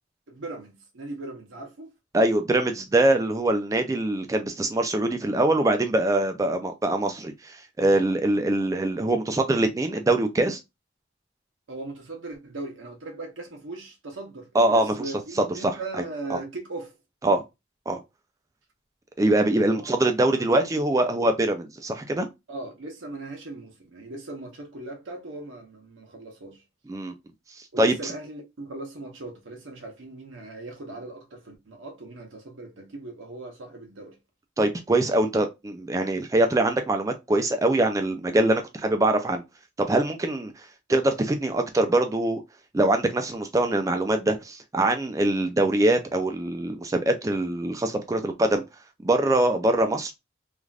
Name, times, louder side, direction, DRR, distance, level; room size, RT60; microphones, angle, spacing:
voice 1, 0.3-1.9 11.7-16.9 19.8-19.9 20.3-21.0 22.5-26.6 27.7-34.2, right 2 dB, 90° right, 0.8 m, -39 dB
voice 2, 2.1-10.6 14.5-14.9 15.6-16.0 16.3-16.4 17.2-17.4 17.9-18.0 19.2-22.3 26.9-27.1 27.8-28.1 34.6-39.4 39.8-40.5 40.9-42.4 42.7-48.6 49.0-50.1, right 1 dB, 15° right, 0.3 m, -23 dB
3.2 x 2.4 x 2.3 m
head